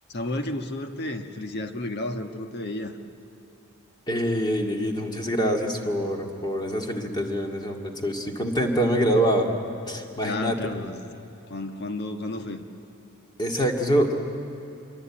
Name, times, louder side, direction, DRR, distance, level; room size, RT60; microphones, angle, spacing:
voice 1, 0.1-3.0 10.2-11.0 11.5-12.6, left 2 dB, 50° left, 6 dB, 1.5 m, -32 dB
voice 2, 4.1-9.5 9.9-10.6 13.4-14.2, equal, 20° left, 2 dB, 2.3 m, -25 dB
25.5 x 23.5 x 8.8 m, 2.8 s
head